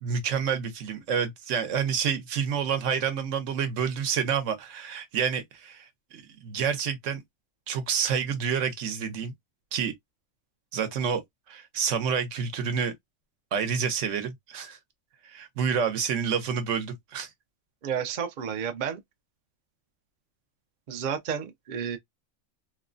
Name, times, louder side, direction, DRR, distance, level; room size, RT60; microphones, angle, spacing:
voice 1, 0.0-7.2 7.7-9.3 9.7-9.9 10.7-12.9 13.5-14.8 15.2-17.3, right 7 dB, 70° right, 1.0 m, -28 dB
voice 2, 17.8-19.0 20.9-22.0, right 8 dB, 55° right, 0.5 m, -31 dB
3.0 x 2.1 x 2.4 m
omnidirectional pair, 1.4 m